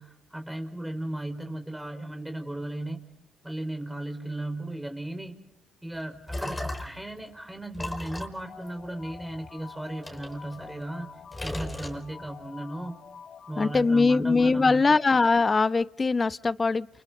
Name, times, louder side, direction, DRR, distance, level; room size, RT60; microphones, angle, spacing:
voice 1, 0.0-3.0 3.4-5.4 5.8-11.1 11.4-12.9 13.5-15.0, right 1 dB, 10° right, 4.5 m, -36 dB
sound 1, 5.9-7.1 7.7-9.5 10.0-11.0 11.3-12.4, left 1 dB, 15° left, 4.9 m, -36 dB
sound 2, 8.4-13.9, left 6 dB, 55° left, 2.9 m, -47 dB
voice 2, 13.6-16.9, left 4 dB, 30° left, 0.9 m, -22 dB
29.5 x 29.0 x 4.0 m
supercardioid pair, 75°, 0 cm